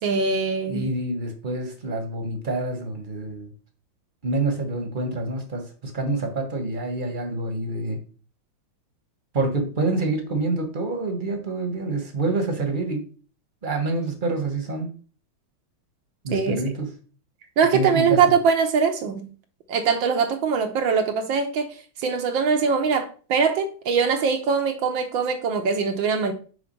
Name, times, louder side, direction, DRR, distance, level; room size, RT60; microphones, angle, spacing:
voice 1, 0.0-0.9 16.3-16.6 17.6-19.3 19.7-21.7 22.0-26.3, right 5 dB, 75° right, 1.5 m, -22 dB
voice 2, 0.6-3.5 4.2-8.0 9.3-13.1 13.6-14.9 16.2-16.9 17.7-18.2, right 2 dB, 30° right, 1.1 m, -27 dB
5.8 x 4.0 x 5.2 m
omnidirectional pair, 2.2 m